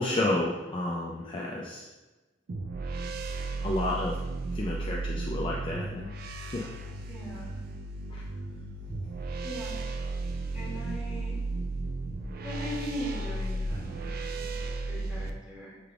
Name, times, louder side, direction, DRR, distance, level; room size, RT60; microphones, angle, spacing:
voice 1, 0.0-1.9 3.6-4.2 4.5-6.1 6.5-6.7 8.1-8.2, left 1 dB, 25° left, -3 dB, 0.3 m, -31 dB
sound 1, 2.5-15.3, right 2 dB, 50° right, 0.3 m, -34 dB
voice 2, 7.1-7.6 9.4-9.8 10.5-11.4 12.4-15.8, equal, 5° right, -9 dB, 1.5 m, -40 dB
5.8 x 3.3 x 2.4 m, 1.2 s
head